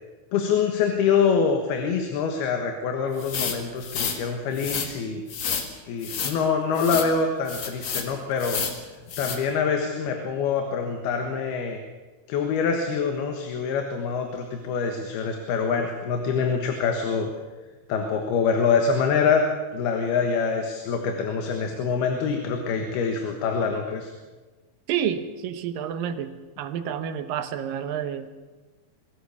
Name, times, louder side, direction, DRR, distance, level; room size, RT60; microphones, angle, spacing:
voice 1, 0.3-5.2 5.9-8.6 9.2-11.8 12.3-17.3 17.9-19.5 19.7-24.1, left 5 dB, 75° left, 4 dB, 3.4 m, -25 dB
sound 1, 3.2-4.2 4.5-4.9 5.3-5.7 6.0-6.4 6.7-7.1 7.5-8.1 8.4-8.8 9.1-9.4, left 6 dB, 50° left, 2.7 m, -30 dB
voice 2, 24.9-28.3, right 9 dB, 70° right, 10 dB, 2.6 m, -29 dB
23.0 x 17.0 x 7.1 m, 1.3 s
omnidirectional pair, 4.5 m